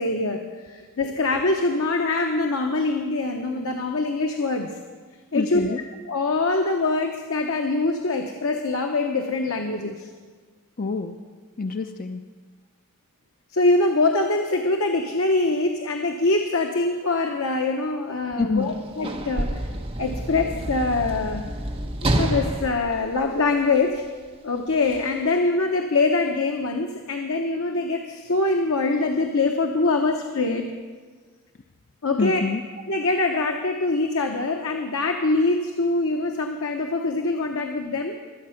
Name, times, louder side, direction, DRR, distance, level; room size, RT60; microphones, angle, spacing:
voice 1, 0.0-4.8 5.3-5.8 6.1-10.1 13.5-19.7 20.0-21.5 22.0-24.0 24.4-30.6 32.0-32.4 32.9-38.2, left 3 dB, 70° left, 3 dB, 0.9 m, -24 dB
voice 2, 5.3-5.8 10.8-11.2 11.6-12.2 18.4-18.7 32.2-32.6, left 4 dB, 40° left, 6 dB, 0.5 m, -26 dB
Sliding door / Slam, 18.6-24.0 24.9-25.0, right 1 dB, 25° right, 1.0 m, -28 dB
23.0 x 8.6 x 5.8 m, 1.5 s
head